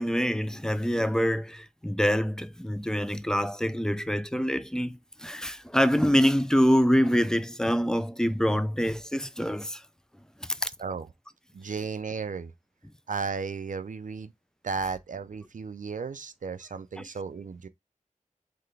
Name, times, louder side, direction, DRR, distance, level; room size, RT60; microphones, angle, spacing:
voice 1, 0.0-9.8 10.4-10.7, equal, 5° left, 0.4 m, -25 dB
voice 2, 11.5-12.5 13.1-14.3 14.6-17.7, right 5 dB, 65° right, 0.4 m, -34 dB
3.9 x 3.3 x 3.3 m
wide cardioid pair, 60°, 14 cm